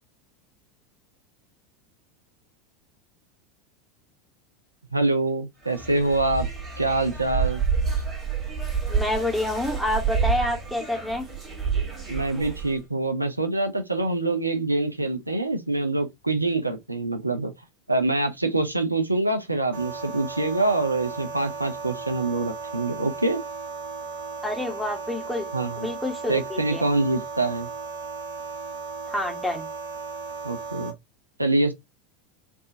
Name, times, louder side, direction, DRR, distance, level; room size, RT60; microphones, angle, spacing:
voice 1, 4.9-6.5 6.8-7.6 12.1-17.5 17.9-23.4 25.5-25.9 26.3-27.7 30.4-30.9 31.4-31.7, right 2 dB, 85° right, 0.5 m, -25 dB
sound 1, 5.6-12.8, right 6 dB, 25° right, 1.6 m, -28 dB
voice 2, 8.9-11.2 24.4-25.5 25.8-26.8 29.1-29.7, left 1 dB, ahead, 1.1 m, -28 dB
sound 2, 19.7-30.9, right 4 dB, 70° right, 1.2 m, -36 dB
3.3 x 2.6 x 2.7 m
figure-of-eight pair, 80°, 0 cm